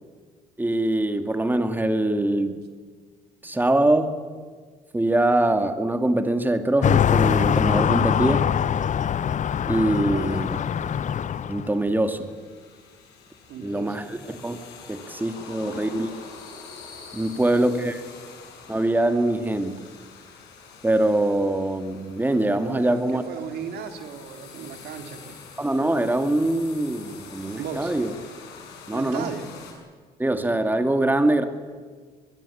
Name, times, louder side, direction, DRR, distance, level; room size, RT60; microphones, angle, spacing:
voice 1, 0.6-2.6 3.4-4.2 4.9-8.5 9.7-10.6 11.5-12.3 13.6-14.6 14.9-16.1 17.1-18.0 18.7-19.8 20.8-23.2 25.6-28.1 28.9-29.3 30.2-31.4, right 1 dB, 10° right, 7 dB, 2.4 m, -23 dB
sound 1, 6.8-11.7, left 8 dB, 45° left, 0.8 m, -23 dB
voice 2, 10.0-10.4 13.5-14.3 17.3-17.5 22.7-25.4 27.6-27.9 28.9-29.5, right 7 dB, 70° right, 6 dB, 3.1 m, -36 dB
sound 2, 10.2-29.7, left 5 dB, 75° left, 6.7 m, -46 dB
24.0 x 21.5 x 8.7 m, 1.5 s
supercardioid pair, 65°, 17 cm